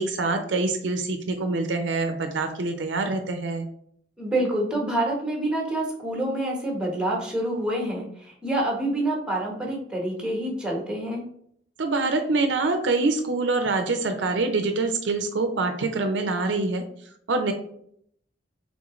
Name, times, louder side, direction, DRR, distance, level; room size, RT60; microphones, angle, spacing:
voice 1, 0.0-3.7 11.8-16.8 17.3-17.5, right 3 dB, 70° right, 6 dB, 0.5 m, -25 dB
voice 2, 4.2-11.2, right 1 dB, 5° right, -2 dB, 1.0 m, -27 dB
3.7 x 3.6 x 3.0 m, 0.67 s
head